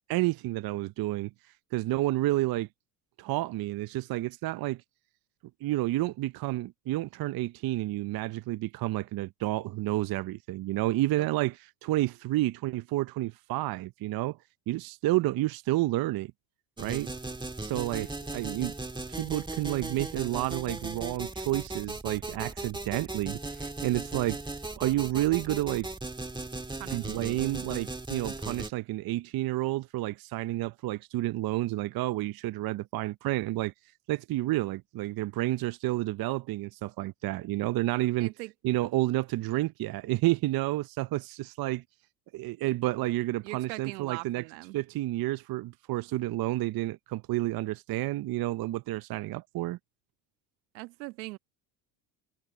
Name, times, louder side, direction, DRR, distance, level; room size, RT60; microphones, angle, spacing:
voice 1, 0.1-1.3 1.7-2.7 3.2-4.8 5.6-14.4 14.7-16.3 16.8-17.1 17.6-18.7 19.1-24.4 24.8-25.9 26.9-33.7 34.1-38.3 38.6-41.8 42.3-44.4 44.7-49.8, right 17 dB, 45° right, 0.7 m, -30 dB
sound 1, 16.8-28.7, right 2 dB, 10° right, 1.5 m, -37 dB
voice 2, 26.8-27.2 38.2-38.5 43.4-44.8 50.7-51.4, right 23 dB, 80° right, 1.4 m, -41 dB
supercardioid pair, 85°, 50 cm